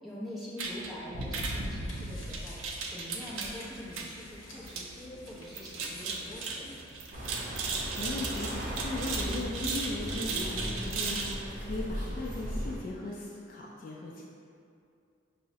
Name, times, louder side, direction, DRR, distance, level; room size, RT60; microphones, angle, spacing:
voice 1, 0.0-2.6 2.9-6.8, left 1 dB, ahead, -9 dB, 0.6 m, -44 dB
sound 1, 0.6-11.4, right 4 dB, 85° right, 0.4 m, -37 dB
sound 2, 1.2-10.5 10.7-10.8, left 1 dB, 85° left, 0.7 m, -52 dB
sound 3, 7.1-12.8, equal, 45° right, 0.6 m, -37 dB
voice 2, 7.6-14.2, left 2 dB, 45° left, -3 dB, 0.3 m, -38 dB
5.4 x 2.0 x 2.7 m, 2.5 s
head